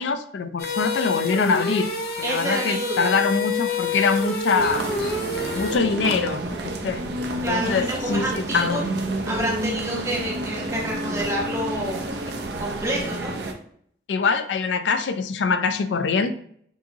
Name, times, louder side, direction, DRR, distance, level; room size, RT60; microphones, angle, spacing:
voice 1, 0.0-4.9 5.3-7.0 7.3-8.8 14.1-16.3, left 4 dB, 85° left, 10 dB, 0.4 m, -24 dB
sound 1, 0.6-5.8, left 3 dB, 60° left, 1.0 m, -28 dB
voice 2, 2.2-3.2 7.4-8.8 9.2-12.0 12.6-13.4, right 1 dB, 15° right, -4 dB, 1.2 m, -28 dB
sound 2, 4.5-13.5, right 1 dB, 70° right, 0.6 m, -30 dB
6.3 x 2.7 x 2.8 m, 0.63 s
head